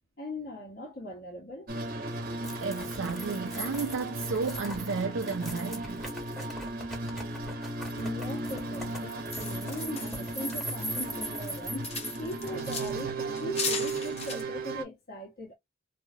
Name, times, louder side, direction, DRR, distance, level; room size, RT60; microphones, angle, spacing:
voice 1, 0.2-1.7 8.0-15.6, left 1 dB, 55° left, 1.5 m, -40 dB
sound 1, 1.7-14.8, right 2 dB, 50° right, 0.9 m, -36 dB
sound 2, 2.4-13.0, right 1 dB, ahead, 1.5 m, -41 dB
voice 2, 2.6-6.0, right 4 dB, 70° right, 0.5 m, -32 dB
sound 3, 9.3-11.2 11.5-13.0 13.4-14.4, left 5 dB, 35° left, 0.9 m, -37 dB
3.1 x 2.7 x 2.3 m
head